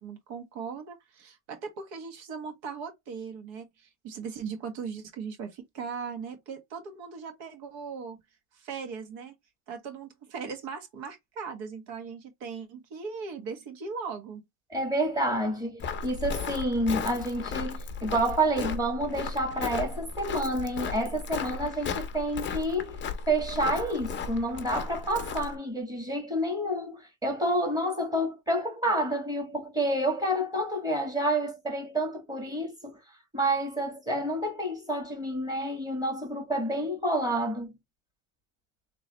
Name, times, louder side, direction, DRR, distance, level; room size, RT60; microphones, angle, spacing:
voice 1, 0.0-8.2 8.5-9.3 9.7-14.4, right 5 dB, 65° right, 1.6 m, -39 dB
voice 2, 14.7-23.0 23.3-33.0 33.3-37.8, right 1 dB, 10° right, 1.8 m, -29 dB
Walk footsteps, 15.8-25.6, left 5 dB, 25° left, 0.6 m, -35 dB
3.9 x 3.0 x 2.9 m
cardioid pair, 140°, 48 cm